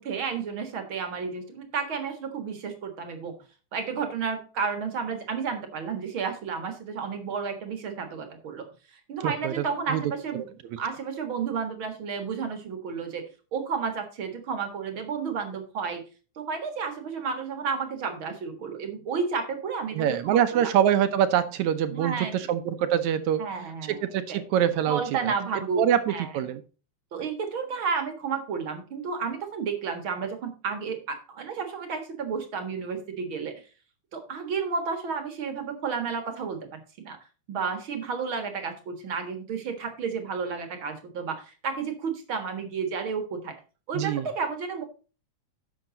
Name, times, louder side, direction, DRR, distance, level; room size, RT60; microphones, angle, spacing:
voice 1, 0.0-3.3 3.7-10.5 10.8-16.0 16.4-20.7 21.9-22.4 23.4-24.0 24.3-24.4 24.9-25.8 26.1-26.3 27.1-33.6 34.1-37.2 37.5-43.5 43.9-44.8, right 5 dB, 45° right, 6 dB, 2.1 m, -32 dB
voice 2, 9.2-9.5 9.9-10.0 19.9-23.4 23.9-25.0 25.8-26.6 43.9-44.3, right 10 dB, 75° right, 11 dB, 2.1 m, -24 dB
11.0 x 7.3 x 3.9 m, 0.35 s
omnidirectional pair, 3.5 m